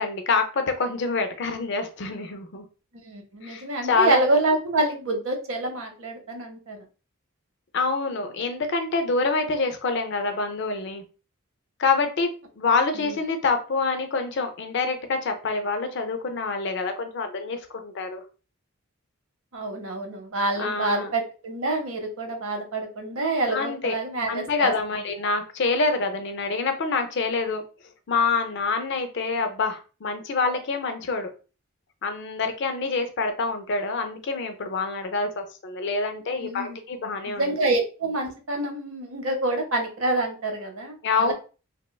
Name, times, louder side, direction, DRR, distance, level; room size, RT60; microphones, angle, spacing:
voice 1, 0.0-2.6 3.4-4.2 7.7-11.0 11.8-12.3 12.6-18.2 20.6-21.1 23.5-23.9 24.3-27.6 28.1-31.3 32.0-37.5 41.0-41.3, left 4 dB, 55° left, 7 dB, 0.4 m, -26 dB
voice 2, 3.0-6.8 12.9-13.1 19.5-25.0 36.4-36.8 37.3-41.3, right 2 dB, 70° right, 4 dB, 0.7 m, -27 dB
2.9 x 2.1 x 2.2 m, 0.34 s
head